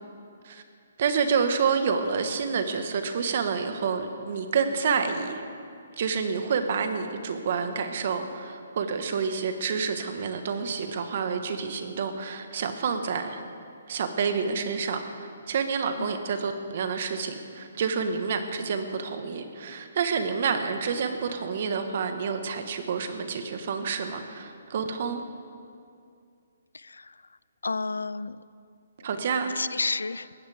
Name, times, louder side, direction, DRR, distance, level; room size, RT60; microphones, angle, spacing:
voice 1, 1.0-5.4 6.0-13.4 13.9-25.2 29.0-29.5, right 5 dB, 55° right, 7 dB, 1.5 m, -28 dB
voice 2, 26.7-27.1 27.6-28.4 29.6-30.3, left 3 dB, 90° left, 18 dB, 0.4 m, -31 dB
21.0 x 15.5 x 3.6 m, 2.4 s
hypercardioid pair, 145°, 0 cm